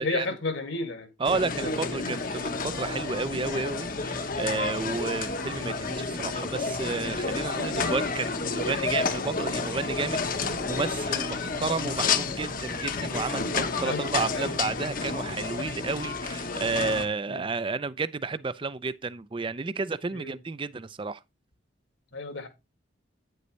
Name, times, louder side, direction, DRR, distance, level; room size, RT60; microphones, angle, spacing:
voice 1, 0.0-1.1 1.4-1.5 1.8-2.3 5.5-5.7 11.8-12.0 13.8-14.9 17.3-17.4 20.1-20.4 22.1-22.5, left 3 dB, 70° left, 2.2 m, -34 dB
sound 1, 1.2-17.0, left 4 dB, 45° left, 1.0 m, -30 dB
voice 2, 1.2-21.2, right 4 dB, 25° right, 0.4 m, -31 dB
9.6 x 7.9 x 3.2 m
head